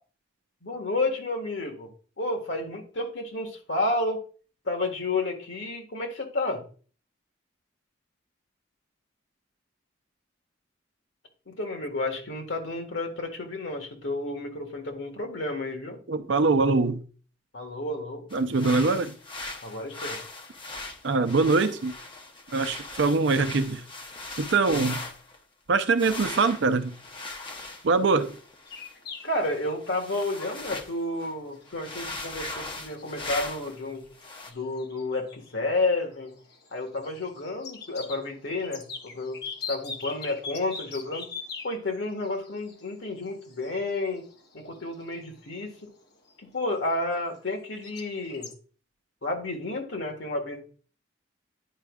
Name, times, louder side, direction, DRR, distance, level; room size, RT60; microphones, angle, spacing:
voice 1, 0.6-1.9 2.2-4.2 4.6-6.6 11.5-16.0 17.5-18.3 19.6-20.2 29.2-34.1 34.5-36.3 36.7-39.4 39.7-41.3 41.6-44.2 44.5-45.9 46.4-48.5 49.2-50.7, left 2 dB, 75° left, 1.6 m, -31 dB
voice 2, 16.1-17.0 18.3-19.2 21.0-21.9 22.5-23.8 24.4-25.0 25.7-26.9 27.8-28.4, right 3 dB, 70° right, 0.6 m, -23 dB
sound 1, 18.3-25.4 26.0-30.9 31.2-31.3 31.7-33.8 34.2-34.5, left 2 dB, 25° left, 0.8 m, -39 dB
sound 2, 28.7-47.6 47.8-48.5, left 5 dB, 55° left, 1.0 m, -43 dB
10.0 x 5.0 x 2.3 m
head